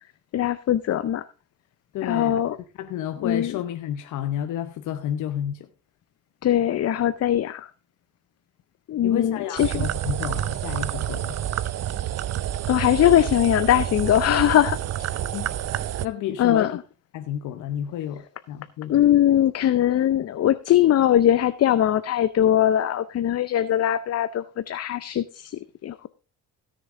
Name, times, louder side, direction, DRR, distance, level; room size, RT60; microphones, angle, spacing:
voice 1, 0.3-1.3 2.0-2.6 3.2-3.6 6.4-7.7 8.9-9.9 12.7-15.2 16.4-16.8 18.9-26.1, left 11 dB, 55° left, 0.7 m, -21 dB
voice 2, 1.9-2.4 2.8-5.7 9.0-11.5 15.3-15.5 16.0-16.7 17.1-19.0, left 10 dB, 85° left, 1.0 m, -31 dB
sound 1, 9.6-16.1, right 11 dB, 55° right, 0.6 m, -28 dB
16.5 x 6.8 x 3.7 m
cardioid pair, 90°, 30 cm